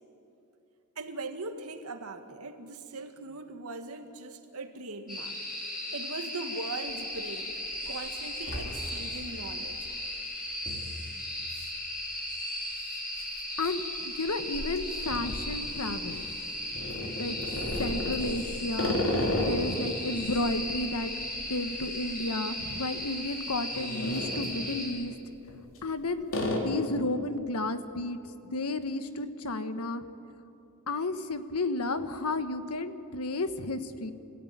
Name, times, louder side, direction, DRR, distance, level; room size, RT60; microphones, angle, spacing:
voice 1, 1.0-7.5 7.9-9.8, right 2 dB, 75° right, 6 dB, 1.9 m, -40 dB
sound 1, 5.1-24.9, left 1 dB, 40° left, 7.1 m, -37 dB
sound 2, 6.9-7.0 7.5-7.9 8.2-9.2 9.6-9.7 10.7-10.9 11.5-11.7 12.0-12.1 13.0-16.1 16.7-19.8 20.2-22.5 22.8-23.0 23.5-24.5 25.4-25.9 26.3-26.6, left 1 dB, 65° left, 3.3 m, -34 dB
voice 2, 13.6-16.4 17.2-17.4 17.8-19.0 19.4-21.1 21.5-25.1 25.8-26.2 26.6-28.2 28.5-30.0 30.9-34.1, left 2 dB, 90° left, 9 dB, 1.4 m, -32 dB
27.0 x 16.5 x 9.4 m, 2.8 s
head